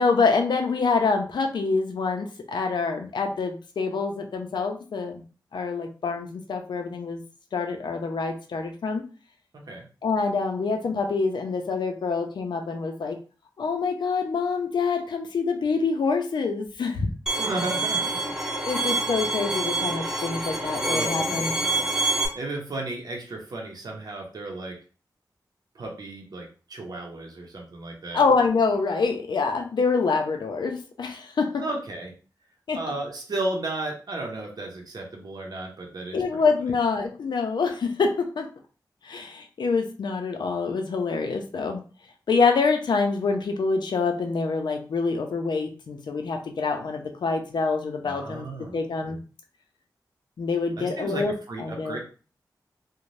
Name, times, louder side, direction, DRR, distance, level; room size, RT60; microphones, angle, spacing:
voice 1, 0.0-5.2 5.5-7.2 7.5-9.0 10.0-13.2 13.6-17.1 18.7-21.5 28.1-31.6 32.7-32.8 36.1-38.5 39.0-41.8 42.3-49.2 50.4-51.3 51.6-52.0, left 4 dB, 85° left, 5 dB, 0.5 m, -26 dB
voice 2, 9.5-9.8 17.4-18.2 20.8-22.0 22.3-24.8 25.7-28.2 31.6-32.1 32.7-36.2 48.0-48.8 50.8-52.0, right 2 dB, 65° right, 0 dB, 0.7 m, -34 dB
Bowed string instrument, 17.3-22.3, right 2 dB, 5° right, 0.7 m, -27 dB
2.6 x 2.1 x 3.1 m, 0.36 s
wide cardioid pair, 110°, 7 cm